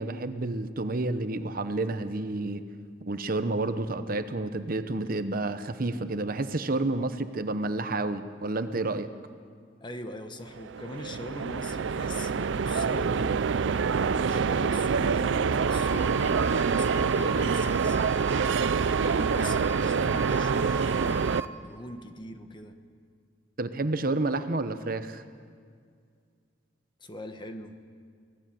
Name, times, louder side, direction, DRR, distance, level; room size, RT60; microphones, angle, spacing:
voice 1, 0.0-2.6 3.0-9.1 19.4-19.5 23.6-25.2, right 2 dB, 50° right, 10 dB, 1.0 m, -30 dB
voice 2, 9.8-13.5 14.0-18.3 18.8-21.3 21.6-22.8 27.0-27.8, left 1 dB, 25° left, 7 dB, 1.3 m, -41 dB
sound 1, 10.5-21.4, right 5 dB, 85° right, 0.5 m, -26 dB
sound 2, 15.7-21.5, right 5 dB, 15° right, 1.1 m, -37 dB
24.5 x 18.0 x 7.7 m, 2.1 s
head